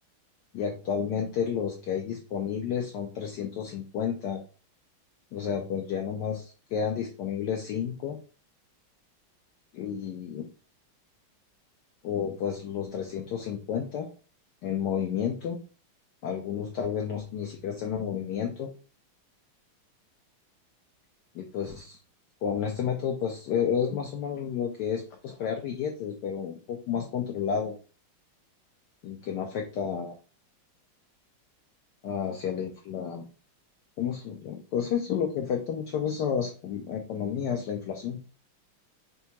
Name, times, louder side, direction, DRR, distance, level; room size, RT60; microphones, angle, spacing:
voice 1, 0.5-4.4 5.3-8.2 9.7-10.5 12.0-14.1 14.6-15.6 16.2-18.7 21.3-22.0 22.4-27.7 29.0-30.1 32.0-33.3 34.0-38.2, left 8 dB, 85° left, 2 dB, 0.9 m, -31 dB
5.3 x 2.2 x 2.8 m, 0.37 s
omnidirectional pair, 2.4 m